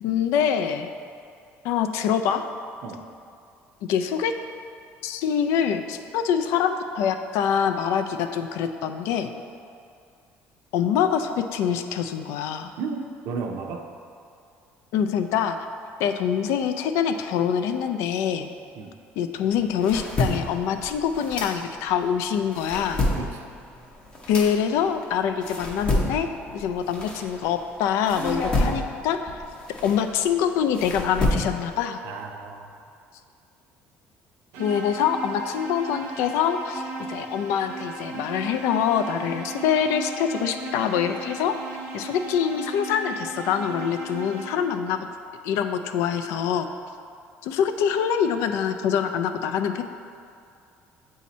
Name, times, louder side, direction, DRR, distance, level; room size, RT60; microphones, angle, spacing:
voice 1, 0.0-0.9 1.6-2.4 3.9-4.3 5.0-9.3 10.7-12.7 14.9-15.6 16.0-18.5 19.2-23.0 24.3-29.4 29.8-32.0 34.6-36.8 37.1-41.6 41.9-45.0 45.4-46.7 47.4-49.8, left 8 dB, 75° left, 8 dB, 0.4 m, -25 dB
voice 2, 12.8-13.9 18.7-18.9 23.2-23.5 32.0-32.7, right 4 dB, 60° right, 3 dB, 0.5 m, -34 dB
sound 1, 19.5-22.0 22.4-27.7 28.1-31.8, left 1 dB, 20° left, 0.6 m, -29 dB
sound 2, 34.5-44.9, right 4 dB, 85° right, 0.9 m, -37 dB
8.2 x 2.8 x 4.1 m, 2.4 s
cardioid pair, 175°, 5 cm